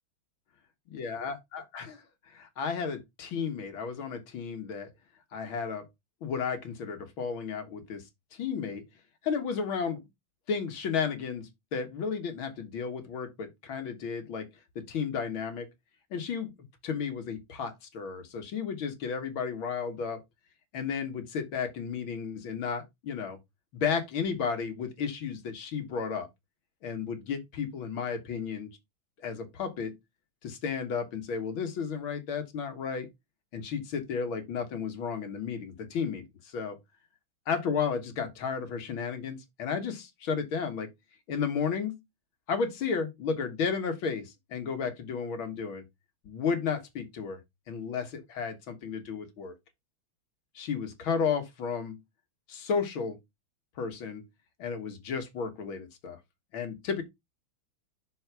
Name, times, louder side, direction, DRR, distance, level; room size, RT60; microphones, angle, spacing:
voice 1, 0.9-2.0 2.3-4.9 5.3-5.9 6.2-8.0 8.3-8.8 9.2-10.0 10.5-14.5 14.8-15.7 16.1-16.5 16.8-20.2 20.7-23.4 23.7-26.3 26.8-28.7 29.2-30.0 30.4-33.1 33.5-36.8 37.5-40.9 41.3-42.0 42.5-45.8 46.3-47.4 47.7-49.5 50.6-52.0 52.5-53.2 53.8-54.2 54.6-56.2 56.5-57.0, left 6 dB, 70° left, 2.3 m, -33 dB
6.3 x 4.5 x 6.0 m
omnidirectional pair, 2.3 m